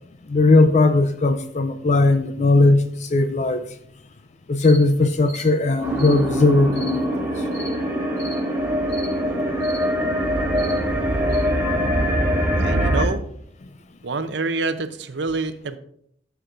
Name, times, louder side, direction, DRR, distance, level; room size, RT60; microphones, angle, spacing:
voice 1, 0.3-3.6 4.5-7.1, left 2 dB, 40° left, 9 dB, 0.4 m, -18 dB
sound 1, 4.6-4.8 5.2-5.5 6.0-6.2 6.7-6.9 7.5-7.7 8.2-8.4 8.9-9.1 9.6-9.8 10.5-10.8 11.3-11.4, left 1 dB, 65° left, 3.7 m, -37 dB
sound 2, 5.8-13.1, equal, 10° right, 2.0 m, -23 dB
voice 2, 12.6-13.2 14.0-15.8, right 3 dB, 65° right, 10 dB, 0.6 m, -26 dB
14.5 x 6.9 x 2.5 m, 0.69 s
head